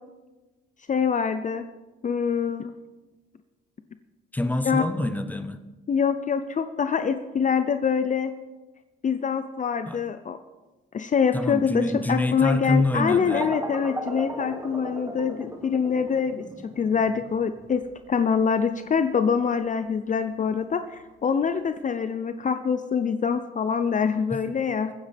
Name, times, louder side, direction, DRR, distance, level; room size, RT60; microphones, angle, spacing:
voice 1, 0.9-1.6 2.0-2.7 4.7-4.8 5.9-8.3 9.0-10.4 10.9-17.8 18.1-24.9, left 6 dB, 40° left, 10 dB, 0.7 m, -25 dB
voice 2, 4.3-5.6 9.8-10.0 11.3-13.5 24.3-24.4, left 1 dB, 10° left, 9 dB, 1.0 m, -26 dB
sound 1, 13.3-21.7, right 1 dB, 15° right, 1.6 m, -38 dB
22.0 x 9.7 x 3.5 m, 1.2 s
cardioid pair, 90°, 20 cm